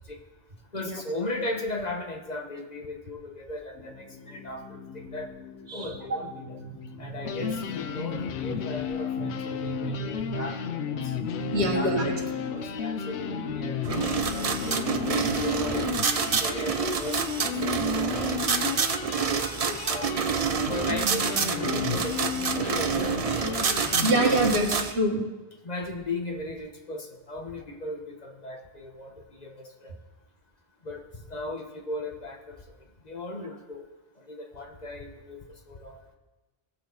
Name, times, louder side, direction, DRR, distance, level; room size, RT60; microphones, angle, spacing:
voice 1, 0.7-5.3 5.7-6.6 7.0-11.2 11.7-12.2 12.5-14.8 15.3-15.9 16.4-18.9 19.1-19.4 19.9-20.1 20.7-23.8 25.6-29.1 29.4-30.0 30.8-31.0 31.3-32.6 33.0-33.9 34.2-36.0, left 2 dB, 40° left, 2 dB, 1.2 m, -37 dB
sound 1, 3.7-16.4, left 2 dB, 60° left, 3.2 m, -41 dB
sound 2, 6.8-6.9 7.2-24.5, left 8 dB, 85° left, 1.0 m, -33 dB
voice 2, 7.0-7.5 8.5-8.6 9.2-10.4 11.3-12.2 24.0-25.3, right 1 dB, 85° right, 1 dB, 1.8 m, -27 dB
sound 3, 13.8-24.9, right 6 dB, 45° right, 0.6 m, -28 dB
17.5 x 6.5 x 4.0 m, 1.2 s
omnidirectional pair, 1.1 m